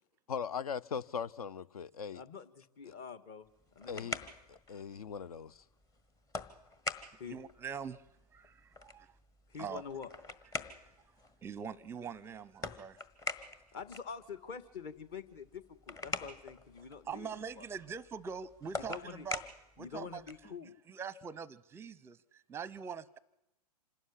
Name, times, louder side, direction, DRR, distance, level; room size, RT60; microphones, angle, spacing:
voice 1, 0.3-2.2 2.9-3.0 3.9-4.2 4.5-5.6, left 6 dB, 65° left, 0.9 m, -39 dB
voice 2, 2.1-3.5 3.8-4.3 7.2-7.4 9.5-10.1 13.7-17.7 18.8-19.3 19.8-20.8, left 6 dB, 35° left, 1.8 m, -46 dB
sound 1, 3.5-20.5, left 2 dB, 15° left, 1.3 m, -45 dB
voice 3, 7.3-8.1 8.3-9.1 9.6-9.8 10.6-10.8 11.4-13.0 17.1-19.4 19.8-20.5 20.9-23.2, right 6 dB, 10° right, 0.7 m, -43 dB
26.5 x 13.0 x 10.0 m
figure-of-eight pair, 115°, 21 cm